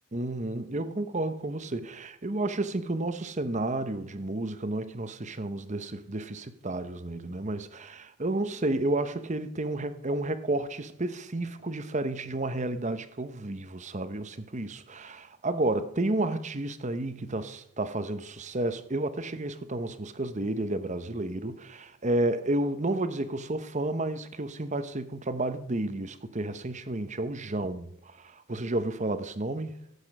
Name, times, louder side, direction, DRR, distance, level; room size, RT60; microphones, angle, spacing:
voice 1, 0.1-29.8, right 2 dB, 35° right, 0.9 m, -31 dB
16.5 x 8.2 x 5.4 m
head